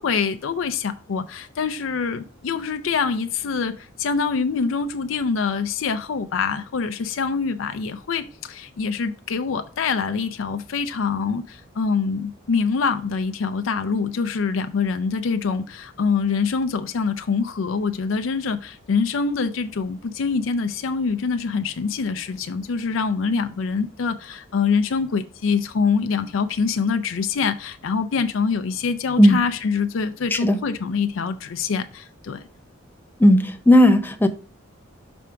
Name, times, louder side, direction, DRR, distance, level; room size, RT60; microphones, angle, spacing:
voice 1, 0.0-32.4, left 5 dB, 75° left, 0.4 m, -25 dB
voice 2, 33.2-34.3, left 1 dB, 10° left, 0.5 m, -15 dB
6.2 x 3.4 x 4.6 m
head